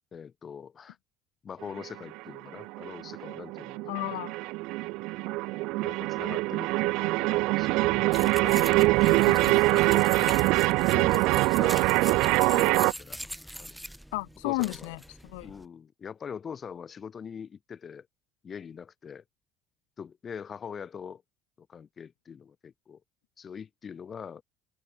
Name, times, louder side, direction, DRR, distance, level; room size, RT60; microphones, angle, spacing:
voice 1, 0.1-1.0 1.4-3.9 5.8-8.8 9.0-10.4 10.9-13.2 13.6-13.7 14.4-15.0 15.4-18.1 18.4-19.2 20.0-21.2 21.6-23.0 23.4-24.4, left 7 dB, 40° left, 4.3 m, -43 dB
sound 1, 1.6-12.9, right 23 dB, 75° right, 0.6 m, -24 dB
voice 2, 3.9-4.3 9.3-9.6 14.1-15.5, left 25 dB, 85° left, 0.9 m, -33 dB
sound 2, 8.1-15.7, equal, ahead, 6.4 m, -42 dB
open air
supercardioid pair, 85°, 0 cm